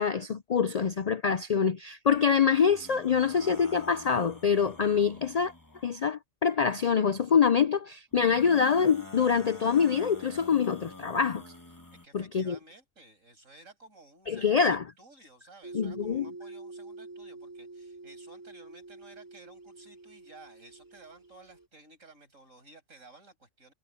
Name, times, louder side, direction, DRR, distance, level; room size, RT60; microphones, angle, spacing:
voice 1, 0.0-5.5 5.8-11.4 12.1-12.6 14.3-14.8 15.7-16.3, left 6 dB, 80° left, 0.3 m, -25 dB
sound 1, 2.7-6.1 8.1-12.1, left 2 dB, 15° left, 1.6 m, -48 dB
voice 2, 12.0-23.7, right 2 dB, 80° right, 7.0 m, -54 dB
sound 2, 15.6-21.7, right 3 dB, 15° right, 3.0 m, -46 dB
omnidirectional pair, 1.4 m